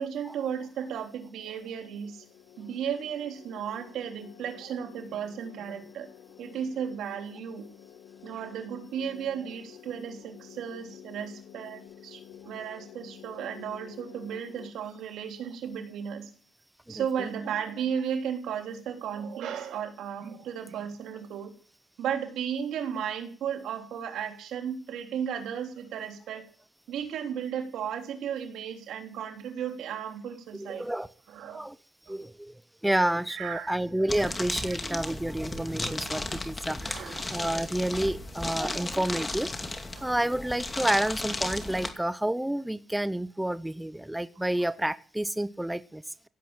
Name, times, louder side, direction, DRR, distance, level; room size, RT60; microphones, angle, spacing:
voice 1, 0.0-2.2 2.6-6.1 6.4-7.7 8.2-16.3 16.9-21.5 22.0-26.4 26.9-30.8 31.3-31.6 33.3-33.7 34.1-34.3 36.9-37.3 39.9-40.1, right 8 dB, 80° right, 4 dB, 3.5 m, -34 dB
sound 1, 2.0-14.7, left 10 dB, 85° left, 1.6 m, -50 dB
voice 2, 16.9-17.3 30.6-31.1 31.5-31.8 32.1-32.5 32.8-39.5 40.0-46.3, right 1 dB, 5° right, 15 dB, 0.7 m, -30 dB
sound 2, 34.1-41.9, left 2 dB, 20° left, 2.4 m, -35 dB
16.5 x 8.2 x 8.9 m, 0.43 s
cardioid pair, 90°, 0 cm